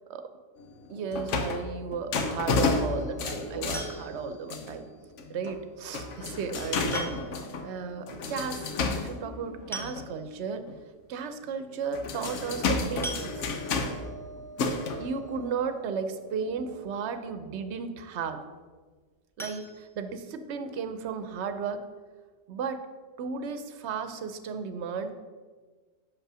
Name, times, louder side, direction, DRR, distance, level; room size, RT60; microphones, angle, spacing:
sound 1, 0.6-4.9 5.2-5.6 5.9-10.1 10.7-10.8 11.7-16.6 17.2-17.3, left 4 dB, 85° left, 1.1 m, -32 dB
voice 1, 0.9-4.8 5.3-8.7 8.9-10.6 11.1-13.4 15.0-18.4 19.4-21.8 22.5-22.9 23.2-25.1, right 6 dB, 70° right, 9 dB, 0.9 m, -34 dB
sound 2, 3.7-4.4 5.8-5.9 6.9-7.5 7.8-7.9 8.2-8.3 9.3-9.4 9.7-10.4 11.0-11.1 11.4-11.6 13.0-13.9 19.3-20.5 20.9-21.0 21.4-21.5 21.9-22.0, right 1 dB, 5° left, 0.5 m, -40 dB
5.9 x 5.4 x 6.1 m, 1.4 s
omnidirectional pair, 1.2 m